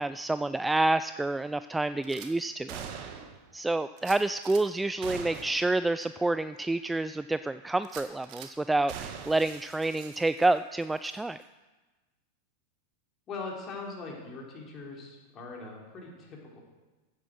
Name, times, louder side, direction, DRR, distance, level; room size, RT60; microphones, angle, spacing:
voice 1, 0.0-2.8 3.5-11.4, right 2 dB, 5° right, 13 dB, 0.3 m, -28 dB
Gunshot gunfire / Glass, 2.0-2.3 2.7-3.4 4.0-4.6 5.0-5.7 6.0-6.1 6.6-6.7 7.8-8.5 8.9-10.7 11.0-11.2, right 8 dB, 45° right, 1.6 m, -43 dB
voice 2, 13.3-16.6, left 3 dB, 30° left, -1 dB, 4.0 m, -41 dB
15.0 x 8.6 x 6.4 m, 1.2 s
figure-of-eight pair, 90°, 0 cm